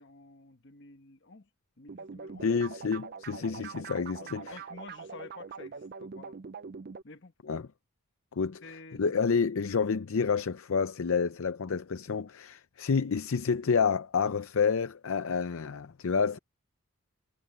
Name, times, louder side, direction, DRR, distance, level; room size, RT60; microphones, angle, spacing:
voice 1, 0.0-1.5 1.8-2.5 3.6-3.7 4.2-6.4 7.0-7.3 8.6-9.1, left 2 dB, 55° left, 1.3 m, -50 dB
sound 1, 1.9-7.0, right 5 dB, 45° right, 0.4 m, -43 dB
voice 2, 2.4-4.6 7.5-7.7 8.4-8.6 9.0-16.4, left 5 dB, 70° left, 0.5 m, -29 dB
head